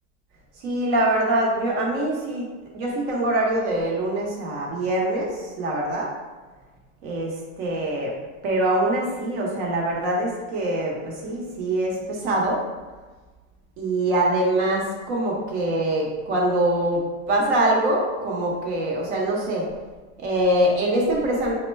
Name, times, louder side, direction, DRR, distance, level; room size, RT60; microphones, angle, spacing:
voice 1, 0.6-2.5 2.7-6.1 7.0-8.1 8.4-12.6 13.8-19.7 20.2-21.5, right 1 dB, 55° right, -2 dB, 1.1 m, -24 dB
3.6 x 2.2 x 4.4 m, 1.3 s
supercardioid pair, 170°, 40 cm